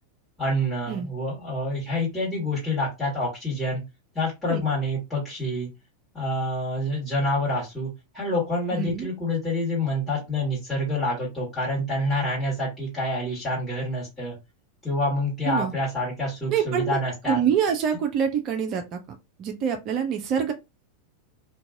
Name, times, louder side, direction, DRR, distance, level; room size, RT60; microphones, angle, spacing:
voice 1, 0.4-3.8 4.1-5.7 6.1-14.4 14.8-17.4, left 1 dB, 5° left, 1.4 m, -27 dB
voice 2, 8.7-9.1 15.4-15.7 16.5-17.0 17.3-19.0 19.4-20.5, right 8 dB, 35° right, 0.4 m, -25 dB
2.6 x 2.2 x 2.6 m
figure-of-eight pair, 90°, 0 cm